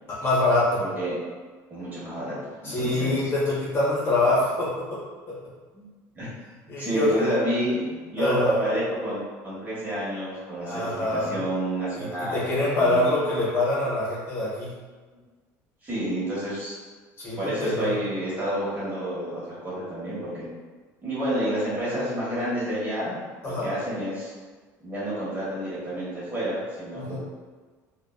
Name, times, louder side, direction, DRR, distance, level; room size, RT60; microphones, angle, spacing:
voice 1, 0.1-0.8 2.6-5.0 5.3-5.4 6.7-7.2 8.2-8.6 10.7-11.4 12.0-14.7 17.2-17.9 23.4-23.7 26.9-27.2, left 2 dB, 30° left, -7 dB, 0.8 m, -25 dB
voice 2, 0.8-1.2 1.7-3.1 5.7-5.9 6.1-6.3 6.8-13.2 15.8-16.8 17.4-20.5 21.0-23.2 23.4-24.3 24.8-27.2, right 1 dB, 25° right, -8 dB, 1.0 m, -29 dB
2.5 x 2.2 x 2.3 m, 1.4 s
cardioid pair, 130°, 7 cm